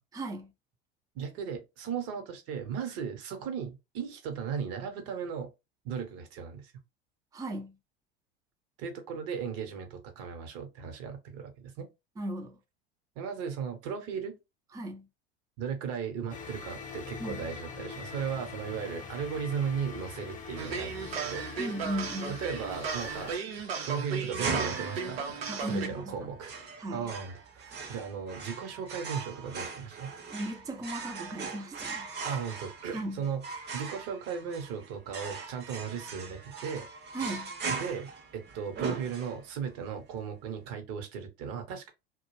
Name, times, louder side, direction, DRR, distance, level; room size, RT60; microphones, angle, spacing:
voice 1, 0.1-0.5 7.3-7.7 12.2-12.5 14.7-15.0 17.2-17.4 21.6-22.4 25.5-26.1 26.8-27.1 30.3-32.1 32.9-33.2 37.1-37.5, right 1 dB, 10° right, 0.5 m, -36 dB
voice 2, 1.1-5.5 5.8-6.7 8.8-11.9 13.2-14.3 15.6-21.5 22.3-23.3 23.8-25.2 25.6-26.5 26.9-30.1 32.2-33.4 33.7-36.9 37.7-41.9, right 7 dB, 55° right, 1.0 m, -36 dB
sound 1, 16.3-23.4, left 6 dB, 25° left, 0.7 m, -43 dB
sound 2, 20.6-25.9, right 5 dB, 85° right, 0.7 m, -36 dB
sound 3, 24.3-39.7, right 4 dB, 35° right, 0.8 m, -39 dB
2.4 x 2.1 x 3.1 m
hypercardioid pair, 85°, 30 cm